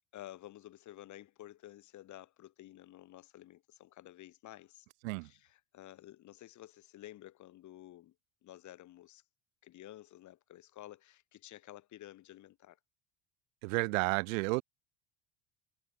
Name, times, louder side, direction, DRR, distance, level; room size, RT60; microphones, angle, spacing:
voice 1, 0.1-4.9 5.2-8.1 8.4-9.2 9.6-12.8, left 14 dB, 50° left, 1.4 m, -52 dB
voice 2, 13.6-14.6, right 27 dB, 85° right, 0.7 m, -31 dB
supercardioid pair, 95°, 38 cm